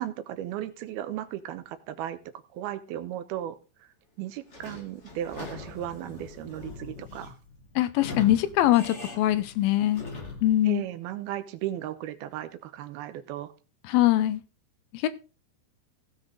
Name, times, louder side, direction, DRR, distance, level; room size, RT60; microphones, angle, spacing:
voice 1, 0.0-2.2 2.5-3.9 4.2-7.4 10.7-13.5, right 12 dB, 75° right, 11 dB, 2.6 m, -36 dB
Sliding door / Squeak, 4.5-10.6, left 3 dB, 35° left, 1.1 m, -41 dB
voice 2, 7.8-10.0 10.4-10.8 13.8-14.4 14.9-15.1, left 14 dB, 80° left, 14 dB, 2.2 m, -22 dB
16.5 x 6.5 x 3.9 m, 0.33 s
omnidirectional pair, 4.9 m